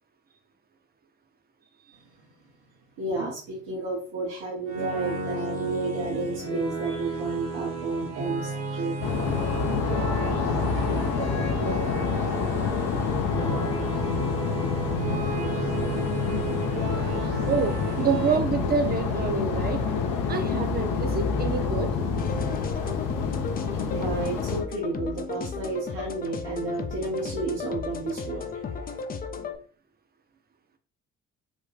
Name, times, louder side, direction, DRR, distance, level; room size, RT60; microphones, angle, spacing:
voice 1, 3.0-9.0 9.9-11.5 23.8-29.0, right 3 dB, 75° right, -5 dB, 0.9 m, -32 dB
sound 1, 4.7-18.4, right 3 dB, 55° right, 1.1 m, -33 dB
sound 2, 9.0-24.6, left 5 dB, 55° left, 0.7 m, -27 dB
voice 2, 17.5-19.8 20.3-21.9, right 5 dB, 25° right, 6 dB, 0.6 m, -28 dB
sound 3, 22.2-29.6, left 4 dB, 25° left, 0.4 m, -35 dB
3.5 x 2.1 x 3.2 m, 0.42 s
hypercardioid pair, 45°, 38 cm